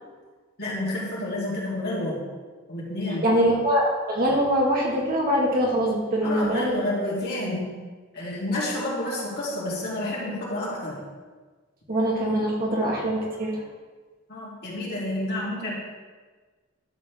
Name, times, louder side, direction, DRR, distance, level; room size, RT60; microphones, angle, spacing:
voice 1, 0.6-2.2 2.7-3.3 6.2-7.8 8.1-11.0 14.3-15.8, left 1 dB, 55° left, -7 dB, 3.2 m, -29 dB
voice 2, 3.2-6.8 11.9-13.6, equal, 45° right, -3 dB, 2.0 m, -23 dB
12.0 x 7.6 x 3.7 m, 1.4 s
head